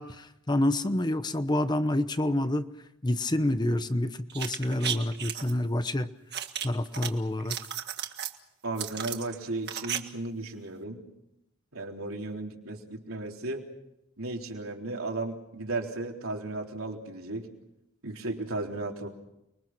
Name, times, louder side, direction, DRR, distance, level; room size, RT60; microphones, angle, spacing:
voice 1, 0.0-2.7 3.0-6.1 6.6-7.6, left 1 dB, 20° left, 11 dB, 0.8 m, -28 dB
sound 1, 4.3-5.5 6.3-7.1 7.4-8.4 8.8-10.0 10.2-10.3, right 9 dB, 50° right, 1.8 m, -34 dB
voice 2, 8.6-11.0 11.7-13.6 14.2-17.5 18.0-19.1, right 2 dB, 70° right, 1 dB, 3.8 m, -35 dB
30.0 x 22.5 x 6.1 m, 0.85 s
head